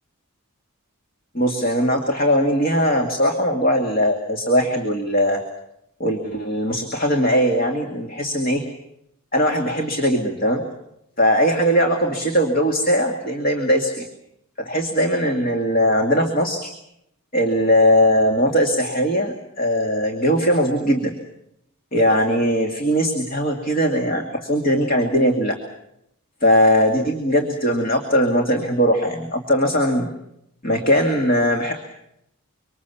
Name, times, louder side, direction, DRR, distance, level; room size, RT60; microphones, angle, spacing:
voice 1, 1.3-5.4 6.0-8.6 9.3-10.6 11.2-14.0 14.6-16.7 17.3-21.2 21.9-25.6 26.4-30.1 30.6-31.7, equal, 40° left, 3 dB, 2.3 m, -20 dB
25.5 x 25.0 x 7.2 m, 0.79 s
head